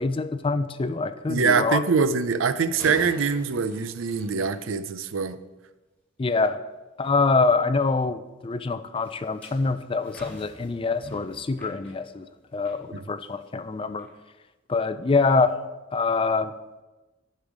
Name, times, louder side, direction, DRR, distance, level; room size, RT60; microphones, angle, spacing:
voice 1, 0.0-1.8 6.2-6.6 7.0-12.3 12.5-14.1 14.7-15.5 15.9-16.5, left 4 dB, 25° left, 12 dB, 0.4 m, -25 dB
voice 2, 1.3-5.4 12.9-13.0, right 5 dB, 80° right, 13 dB, 0.5 m, -24 dB
sound 1, 2.6-5.2 9.0-12.8 13.2-13.4 14.0-14.1, right 1 dB, 5° left, 2.9 m, -44 dB
10.5 x 5.6 x 4.9 m, 1.1 s
head